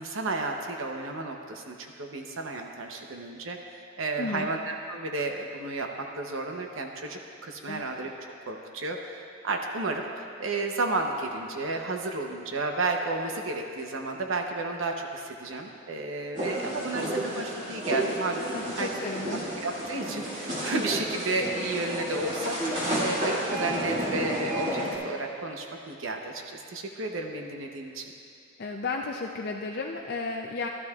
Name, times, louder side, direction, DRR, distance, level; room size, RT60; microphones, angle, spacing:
voice 1, 0.0-8.1 8.5-9.2 9.4-18.5 18.8-18.9 19.6-28.1, right 2 dB, 75° right, 2 dB, 0.8 m, -32 dB
voice 2, 4.2-4.5 7.7-7.8 18.5-19.4 28.6-30.7, left 3 dB, 50° left, 0 dB, 0.4 m, -33 dB
sound 1, 16.3-25.0, right 1 dB, 35° right, 2.2 m, -31 dB
15.5 x 12.0 x 2.4 m, 2.5 s
head